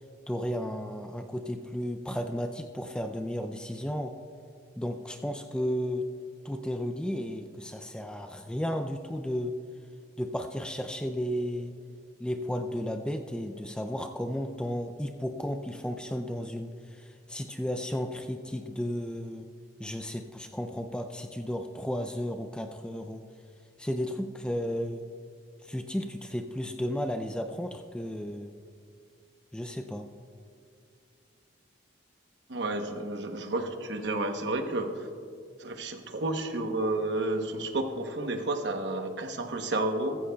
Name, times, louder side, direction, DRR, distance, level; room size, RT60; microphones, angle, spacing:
voice 1, 0.3-4.1 4.8-6.0 6.4-9.6 10.2-11.7 12.2-19.5 19.8-23.2 23.8-25.0 25.6-28.5 29.5-30.1, equal, 5° left, 6 dB, 0.3 m, -33 dB
voice 2, 32.5-34.9 35.6-40.2, right 2 dB, 65° right, 5 dB, 0.9 m, -31 dB
15.0 x 14.0 x 2.3 m, 2.2 s
head